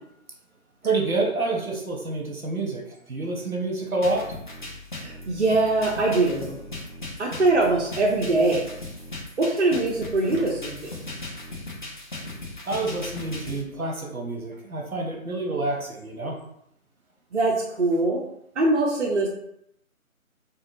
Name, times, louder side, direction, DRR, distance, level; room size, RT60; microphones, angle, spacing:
voice 1, 0.8-2.8 3.1-4.3 12.6-16.4, right 2 dB, 75° right, 0 dB, 1.2 m, -28 dB
sound 1, 4.0-13.6, left 2 dB, 35° left, 0.6 m, -38 dB
voice 2, 5.0-6.6 7.2-8.6 9.4-10.7 17.3-18.2 18.6-19.3, right 2 dB, 50° right, -3 dB, 0.8 m, -22 dB
4.2 x 2.3 x 3.7 m, 0.75 s
figure-of-eight pair, 150°, 42 cm